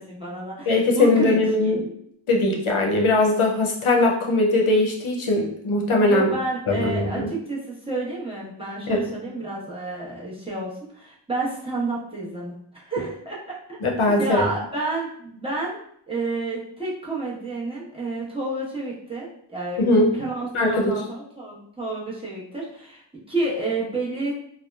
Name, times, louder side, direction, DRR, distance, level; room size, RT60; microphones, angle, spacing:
voice 1, 0.0-1.8 6.1-13.6 14.0-15.8 16.1-19.8 20.1-24.3, right 2 dB, 10° right, -6 dB, 0.9 m, -30 dB
voice 2, 0.7-1.8 2.3-6.3 6.7-7.3 8.9-9.0 13.8-14.5 19.8-20.1 20.5-20.9, left 2 dB, 85° left, -1 dB, 0.6 m, -20 dB
2.8 x 2.1 x 2.2 m, 0.69 s
wide cardioid pair, 45°, 48 cm